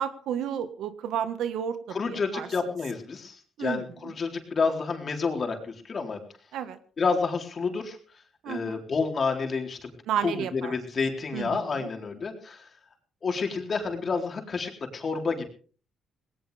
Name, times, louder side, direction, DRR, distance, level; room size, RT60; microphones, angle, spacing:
voice 1, 0.0-2.5 3.6-4.1 6.5-6.8 8.4-8.8 10.1-10.7 11.3-11.9, right 9 dB, 80° right, 11 dB, 1.6 m, -32 dB
voice 2, 1.9-6.2 7.0-8.0 8.5-9.9 10.2-12.7 13.2-15.4, left 4 dB, 40° left, 3 dB, 4.2 m, -29 dB
19.0 x 18.5 x 3.5 m, 0.42 s
cardioid pair, 90°, 0 cm